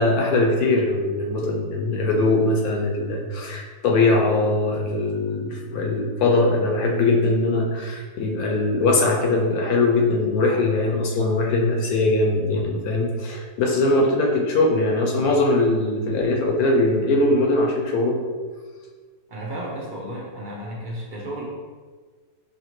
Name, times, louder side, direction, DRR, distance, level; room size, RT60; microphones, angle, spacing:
voice 1, 0.0-18.2, left 2 dB, 70° left, 0 dB, 1.1 m, -21 dB
voice 2, 19.3-21.4, right 1 dB, 50° right, -3 dB, 0.6 m, -33 dB
4.9 x 2.8 x 3.0 m, 1.5 s
omnidirectional pair, 1.7 m